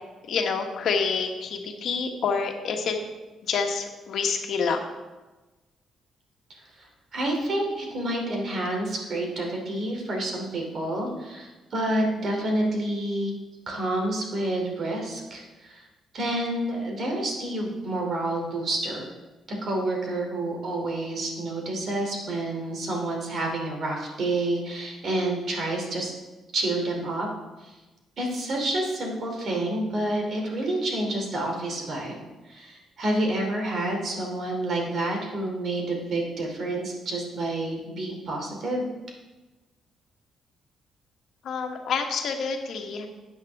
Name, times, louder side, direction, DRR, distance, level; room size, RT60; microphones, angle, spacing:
voice 1, 0.3-3.0 3.4-4.8 41.4-43.1, left 5 dB, 70° left, 3 dB, 1.4 m, -27 dB
voice 2, 6.8-13.3 13.7-15.8 16.1-19.1 19.6-26.1 26.5-27.3 27.6-27.7 28.2-38.9, right 1 dB, 55° right, 1 dB, 3.0 m, -29 dB
12.5 x 8.4 x 3.6 m, 1.2 s
cardioid pair, 90°, 0 cm